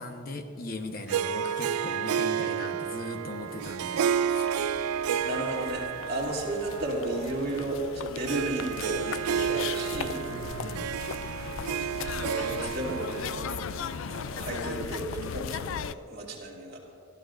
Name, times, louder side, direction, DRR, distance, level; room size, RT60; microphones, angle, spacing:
voice 1, 0.0-4.5 10.3-10.9, left 2 dB, 40° left, 5 dB, 1.1 m, -39 dB
Harp, 1.1-14.7, right 8 dB, 90° right, 0.4 m, -31 dB
sound 1, 3.2-3.3 3.4-15.9, left 8 dB, 65° left, 0.3 m, -38 dB
voice 2, 5.2-10.2 12.1-13.1 14.1-16.8, right 1 dB, 45° right, -4 dB, 2.7 m, -33 dB
25.0 x 14.0 x 2.6 m, 2.7 s
head